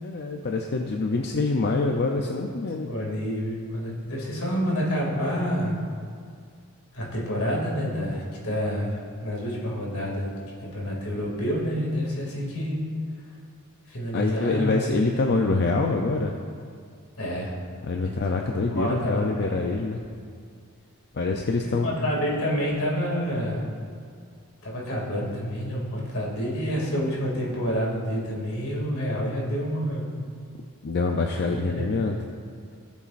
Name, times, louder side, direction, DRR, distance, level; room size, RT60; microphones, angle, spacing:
voice 1, 0.0-2.9 14.1-16.3 17.8-20.1 21.1-21.9 30.8-32.2, left 3 dB, 50° left, 2 dB, 0.5 m, -25 dB
voice 2, 2.9-5.8 6.9-10.3 10.6-12.8 13.9-14.8 17.2-17.5 18.0-19.6 21.8-23.7 24.6-30.0 31.3-31.9, equal, 75° left, -4 dB, 2.5 m, -28 dB
17.0 x 7.1 x 2.6 m, 2.2 s
head